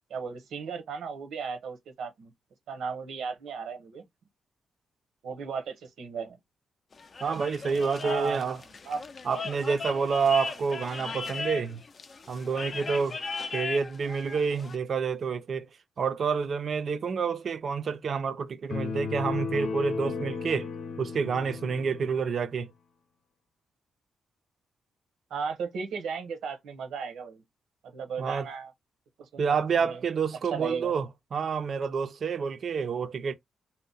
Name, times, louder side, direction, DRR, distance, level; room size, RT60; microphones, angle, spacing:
voice 1, 0.1-2.3 2.7-4.0 5.2-6.4 8.0-8.4 8.9-9.0 25.3-27.4 27.8-28.7 29.2-29.5 29.9-30.0 30.5-30.9, right 5 dB, 80° right, 0.9 m, -35 dB
sound 1, 6.9-14.8, left 4 dB, 35° left, 0.4 m, -37 dB
voice 2, 7.2-8.6 9.2-11.8 12.3-13.2 13.5-15.7 16.0-20.7 21.0-22.7 28.2-28.5 29.4-33.3, right 5 dB, 45° right, 0.5 m, -28 dB
sound 2, 18.7-22.3, left 5 dB, 80° left, 0.8 m, -34 dB
2.7 x 2.1 x 3.9 m
wide cardioid pair, 150°, 0 cm